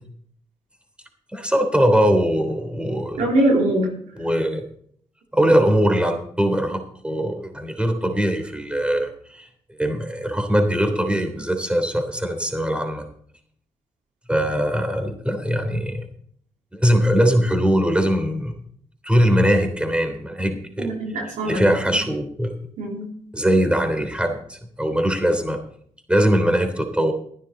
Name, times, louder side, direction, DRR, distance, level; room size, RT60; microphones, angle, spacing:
voice 1, 1.3-3.3 4.2-4.7 5.3-9.5 9.8-13.0 14.3-16.0 16.7-18.5 19.0-20.9 21.4-22.5 23.3-25.6 26.1-27.1, equal, 10° right, 5 dB, 3.3 m, -21 dB
voice 2, 3.2-3.9 20.8-21.7 22.8-23.1, right 1 dB, 85° right, -1 dB, 3.2 m, -22 dB
14.0 x 11.0 x 4.0 m, 0.62 s
supercardioid pair, 45°, 13 cm